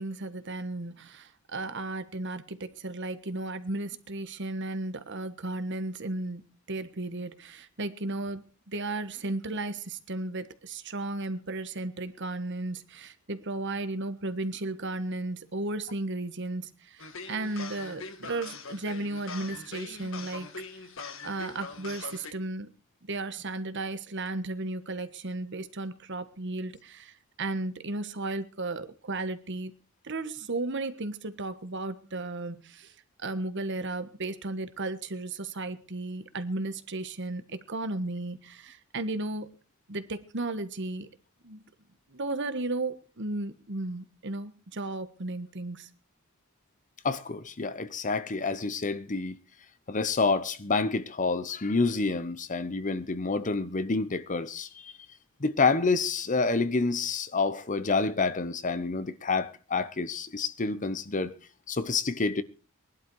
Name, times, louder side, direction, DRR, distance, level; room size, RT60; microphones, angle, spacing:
voice 1, 0.0-6.4 6.7-20.5 21.2-22.7 23.1-29.7 30.0-39.5 39.9-41.1 41.4-41.6 42.1-45.9, right 2 dB, 60° right, 1.4 m, -34 dB
sound 1, 17.0-22.3, left 4 dB, 65° left, 1.8 m, -42 dB
voice 2, 47.0-49.4 49.9-54.9 55.4-61.3 61.7-62.4, left 4 dB, 40° left, 0.9 m, -28 dB
20.0 x 11.5 x 4.7 m
head